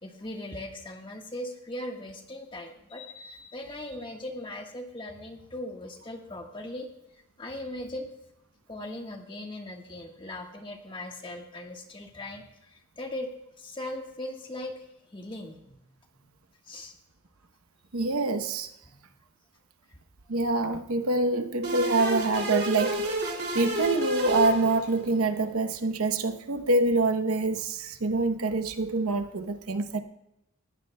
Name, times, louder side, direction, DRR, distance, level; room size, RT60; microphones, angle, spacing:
voice 1, 0.0-6.9 7.4-8.1 8.7-13.3 13.6-15.8 16.2-16.3 16.6-16.9 18.8-19.0, left 1 dB, 20° left, 2 dB, 1.4 m, -39 dB
voice 2, 17.9-18.7 20.3-23.0 23.5-30.0, right 2 dB, 75° right, 8 dB, 0.8 m, -26 dB
sound 1, 21.6-25.2, right 1 dB, 45° right, 2.7 m, -30 dB
19.5 x 15.0 x 2.2 m, 0.84 s
head